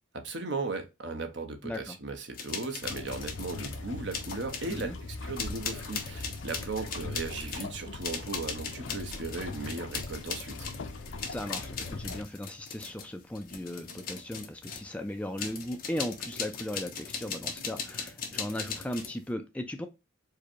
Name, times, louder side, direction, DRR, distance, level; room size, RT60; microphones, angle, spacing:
voice 1, 0.1-4.9 5.2-10.7, right 3 dB, 60° right, 1.0 m, -37 dB
voice 2, 1.6-2.0 4.7-5.0 11.3-19.9, left 1 dB, 5° left, 0.4 m, -37 dB
sound 1, 2.3-3.8 4.1-4.9 5.4-14.9 15.4-19.2, left 6 dB, 45° left, 0.9 m, -39 dB
sound 2, 2.8-12.2, left 3 dB, 70° left, 0.6 m, -41 dB
4.8 x 2.3 x 4.5 m
head